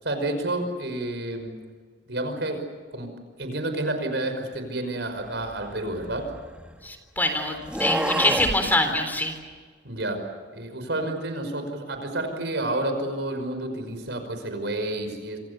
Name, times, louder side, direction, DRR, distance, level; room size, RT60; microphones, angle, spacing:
voice 1, 0.0-1.6 2.1-2.7 2.9-3.1 3.4-6.3 9.8-15.4, right 1 dB, 70° right, 7 dB, 5.6 m, -30 dB
sound 1, 5.4-6.9 7.6-8.6, right 1 dB, 5° right, 1.7 m, -29 dB
voice 2, 6.8-9.3, left 1 dB, 10° left, 6 dB, 3.7 m, -24 dB
27.5 x 27.0 x 6.9 m, 1.6 s
head